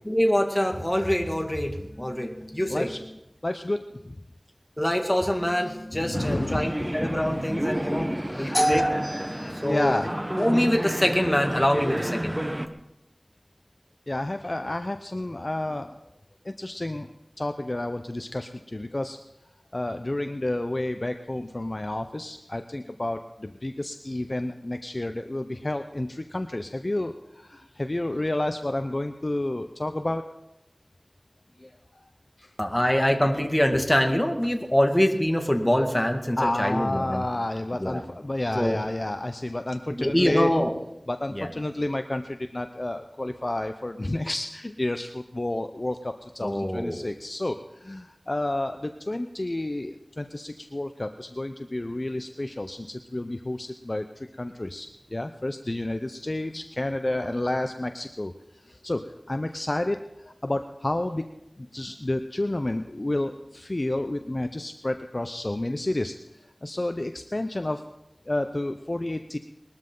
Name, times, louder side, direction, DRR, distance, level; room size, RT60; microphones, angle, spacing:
voice 1, 0.1-2.9 4.8-9.9 10.3-12.4 32.6-37.2 37.7-38.0 38.5-38.8 39.9-40.7 41.3-41.5 46.4-47.1, equal, 15° left, 3 dB, 2.1 m, -24 dB
voice 2, 3.4-4.2 5.7-6.7 8.3-8.6 9.3-10.1 14.1-15.9 16.4-17.1 17.4-19.2 19.7-30.2 31.6-31.7 32.4-32.5 36.4-40.5 41.1-58.3 58.6-61.3 61.6-66.1 66.6-67.8 68.3-69.4, left 1 dB, 45° left, 7 dB, 0.7 m, -30 dB
sound 1, 6.1-12.7, equal, 20° right, 1.1 m, -30 dB
21.0 x 13.0 x 3.9 m, 0.89 s
wide cardioid pair, 40°, 0 cm